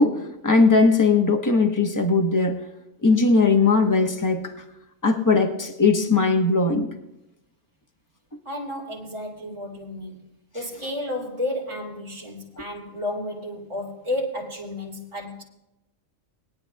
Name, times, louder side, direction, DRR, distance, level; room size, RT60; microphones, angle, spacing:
voice 1, 0.0-2.6 3.0-4.5 5.0-6.9, left 3 dB, 15° left, 1.0 m, -19 dB
voice 2, 8.4-10.2 10.5-15.4, left 1 dB, 25° right, 2.2 m, -32 dB
22.5 x 9.7 x 2.3 m
omnidirectional pair, 1.3 m